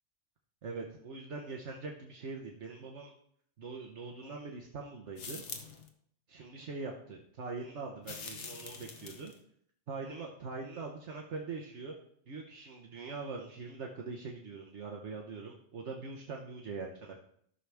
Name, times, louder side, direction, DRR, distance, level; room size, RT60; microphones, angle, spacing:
voice 1, 0.6-3.1 3.6-5.4 6.3-9.3 9.9-11.9 12.3-17.2, right 4 dB, 75° right, 0 dB, 1.3 m, -42 dB
sound 1, 5.2-5.9 8.0-9.4, left 5 dB, 75° left, 1.3 m, -44 dB
14.0 x 6.3 x 3.4 m, 0.66 s
omnidirectional pair, 1.2 m